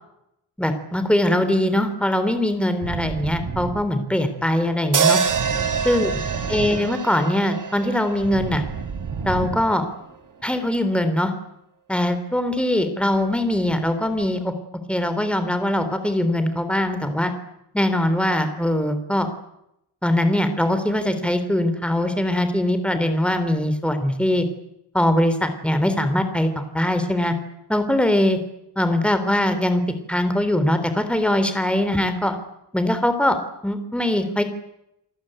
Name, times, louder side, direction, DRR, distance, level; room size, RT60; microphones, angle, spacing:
voice 1, 0.6-5.2 5.8-6.1 6.5-8.6 9.2-9.9 10.4-11.3 11.9-14.5 14.9-17.3 17.7-19.3 20.0-24.4 24.9-27.3 27.7-28.4 28.8-29.8 30.1-32.4 32.7-34.4, left 1 dB, 5° left, 9 dB, 3.5 m, -21 dB
sound 1, 2.8-10.9, right 5 dB, 75° right, 5.2 m, -33 dB
sound 2, 4.9-9.2, right 6 dB, 50° right, 1.8 m, -25 dB
29.0 x 19.5 x 9.0 m, 0.81 s
wide cardioid pair, 140°, 41 cm